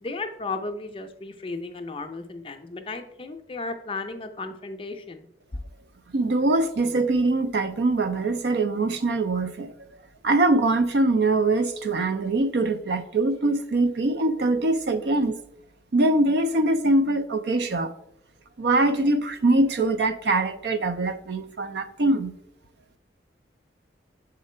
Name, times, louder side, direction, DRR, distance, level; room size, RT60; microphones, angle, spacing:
voice 1, 0.0-5.3, left 3 dB, 30° left, 0.5 m, -34 dB
voice 2, 6.1-9.7 10.2-15.4 15.9-17.9 18.6-22.3, right 2 dB, 65° right, 0.5 m, -23 dB
6.6 x 3.7 x 4.3 m
head